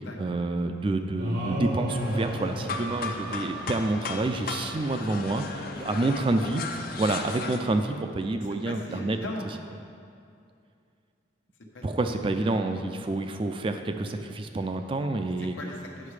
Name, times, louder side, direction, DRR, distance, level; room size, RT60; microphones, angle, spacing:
voice 1, 0.2-6.6 7.0-9.2 11.8-15.6, right 2 dB, 30° right, 7 dB, 0.4 m, -28 dB
sound 1, 1.2-3.7, right 1 dB, 90° right, 1.3 m, -32 dB
sound 2, 1.9-7.6, left 4 dB, 50° left, 0.5 m, -36 dB
voice 2, 5.5-6.0 8.4-9.5 11.7-12.1 15.4-16.1, left 2 dB, 80° left, 0 dB, 1.1 m, -40 dB
8.7 x 5.5 x 4.8 m, 2.5 s
head